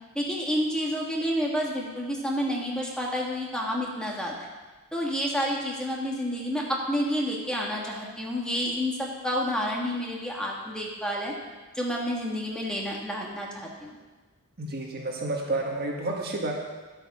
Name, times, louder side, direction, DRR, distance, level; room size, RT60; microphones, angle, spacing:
voice 1, 0.1-4.5 4.9-11.3 11.7-14.0, equal, 5° left, -2 dB, 1.6 m, -29 dB
voice 2, 14.6-16.5, right 2 dB, 45° right, 0 dB, 1.7 m, -30 dB
11.0 x 8.8 x 4.9 m, 1.3 s
head